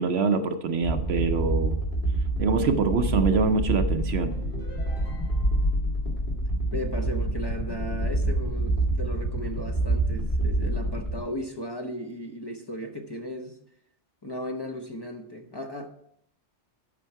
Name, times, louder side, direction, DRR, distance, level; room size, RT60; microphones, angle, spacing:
voice 1, 0.0-1.8 2.4-4.4, right 4 dB, 65° right, 8 dB, 0.9 m, -24 dB
sound 1, 0.8-11.2, right 1 dB, 45° left, 2.1 m, -27 dB
sound 2, 4.3-5.8, right 1 dB, 85° left, 4.7 m, -47 dB
voice 2, 6.7-13.6 14.2-15.9, equal, 20° left, 3 dB, 0.9 m, -36 dB
13.5 x 5.5 x 4.6 m, 0.69 s
omnidirectional pair, 1.2 m